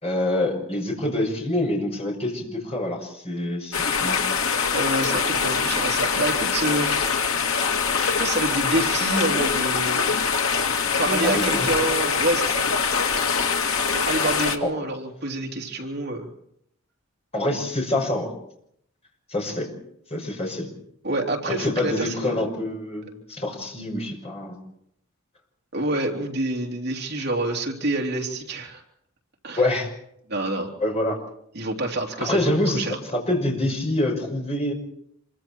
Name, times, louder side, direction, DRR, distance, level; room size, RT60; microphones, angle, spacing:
voice 1, 0.0-4.2 11.0-11.7 14.6-14.7 17.3-18.3 19.3-19.7 20.1-20.7 21.5-24.5 27.2-27.3 29.6-29.9 30.8-31.2 32.2-34.7, left 1 dB, 30° left, 0 dB, 6.2 m, -26 dB
sound 1, 3.7-14.6, left 5 dB, 85° left, 2.1 m, -23 dB
voice 2, 4.7-7.1 8.2-10.0 11.0-12.7 13.9-16.3 21.0-22.4 25.7-28.8 29.4-29.6 30.3-30.7 31.5-33.0, right 2 dB, 50° right, 0 dB, 3.2 m, -27 dB
27.0 x 24.0 x 4.5 m, 0.72 s
head